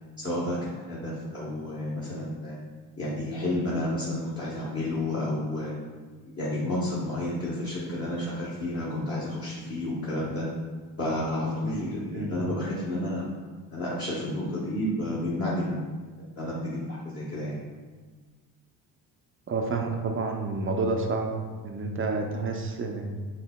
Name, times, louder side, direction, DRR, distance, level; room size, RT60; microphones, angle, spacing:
voice 1, 0.2-2.6 3.0-5.7 6.4-10.5 11.0-13.3 13.7-15.8 16.4-17.5, left 1 dB, 30° left, -7 dB, 1.1 m, -31 dB
voice 2, 19.5-21.4 21.6-23.1, right 3 dB, 25° right, 3 dB, 0.6 m, -29 dB
5.4 x 2.7 x 2.2 m, 1.4 s
hypercardioid pair, 60°, 49 cm